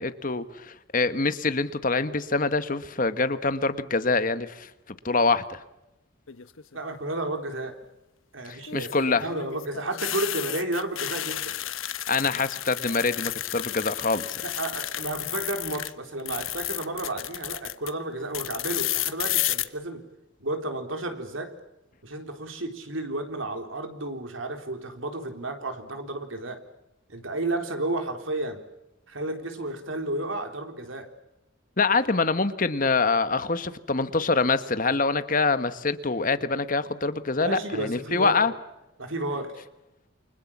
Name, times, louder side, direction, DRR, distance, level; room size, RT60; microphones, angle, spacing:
voice 1, 0.0-4.7 5.0-5.6 8.4-9.3 12.1-14.4 31.8-38.5, left 3 dB, 40° left, 12 dB, 1.3 m, -25 dB
sound 1, 6.3-6.8 8.6-15.9 16.2-17.9 18.3-19.6, left 14 dB, 90° left, 1.1 m, -32 dB
voice 2, 6.7-7.8 8.3-11.5 14.4-20.0 20.4-21.5 22.0-26.6 27.1-28.6 29.1-31.1 37.4-38.5 39.0-39.6, right 2 dB, 80° right, 6 dB, 3.8 m, -32 dB
29.0 x 25.0 x 7.4 m, 0.92 s
head